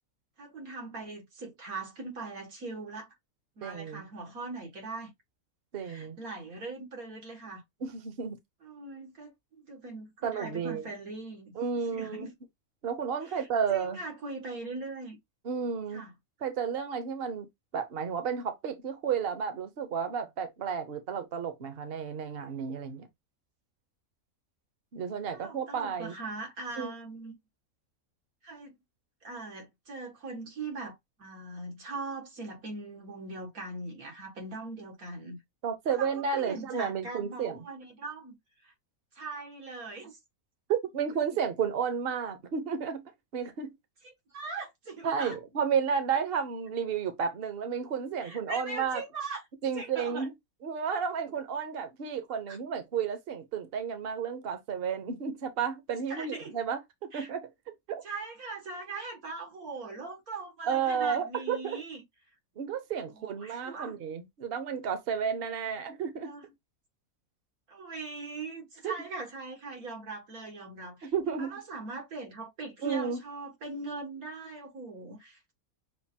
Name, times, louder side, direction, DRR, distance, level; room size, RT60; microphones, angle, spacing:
voice 1, 0.4-3.1 3.6-5.1 5.8-7.6 8.6-12.3 13.2-15.2 15.9-16.1 25.3-27.3 28.4-28.7 29.2-35.4 35.9-38.4 38.6-38.7 39.1-40.2 44.0-45.4 48.2-49.4 49.7-50.3 52.5-52.6 56.1-56.6 57.1-57.3 58.0-62.0 63.1-64.0 66.2-66.5 67.7-71.1 71.4-75.5, right 3 dB, 85° right, 2.3 m, -41 dB
voice 2, 3.6-4.0 5.7-6.2 7.8-8.4 10.2-10.8 11.6-12.3 12.8-14.0 15.4-16.1 16.4-17.5 17.7-23.1 24.9-26.1 26.8-26.9 35.6-37.6 40.7-43.7 45.0-49.0 49.6-50.3 50.6-57.5 57.9-58.0 60.7-61.8 62.6-66.3 68.8-69.0 71.0-71.6 72.8-73.2, right 7 dB, 45° right, 1.0 m, -32 dB
6.6 x 2.6 x 2.8 m
omnidirectional pair, 1.5 m